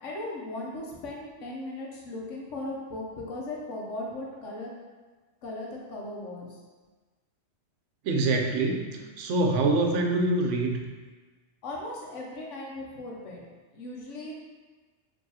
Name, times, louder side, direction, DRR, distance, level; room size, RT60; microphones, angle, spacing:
voice 1, 0.0-4.8 5.4-6.6 11.6-13.4 13.7-14.3, left 2 dB, 85° left, -2 dB, 1.1 m, -37 dB
voice 2, 8.0-10.8, right 2 dB, 85° right, 2 dB, 0.9 m, -25 dB
4.6 x 3.0 x 2.8 m, 1.3 s
omnidirectional pair, 1.2 m